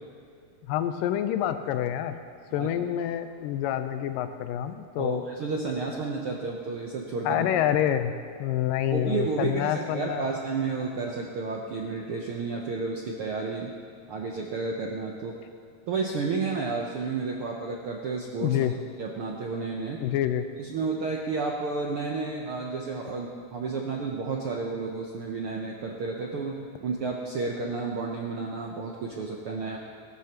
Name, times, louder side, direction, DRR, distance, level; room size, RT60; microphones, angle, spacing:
voice 1, 0.7-2.2 2.5-5.2 7.3-8.1 8.4-10.3 18.4-18.7 20.0-20.4, left 11 dB, 85° left, 9 dB, 2.3 m, -27 dB
voice 2, 5.0-7.5 8.9-13.7 14.1-15.3 15.9-18.7 19.0-20.0 20.6-29.8, right 4 dB, 85° right, -1 dB, 1.2 m, -31 dB
19.5 x 12.5 x 3.0 m, 2.5 s
omnidirectional pair, 3.9 m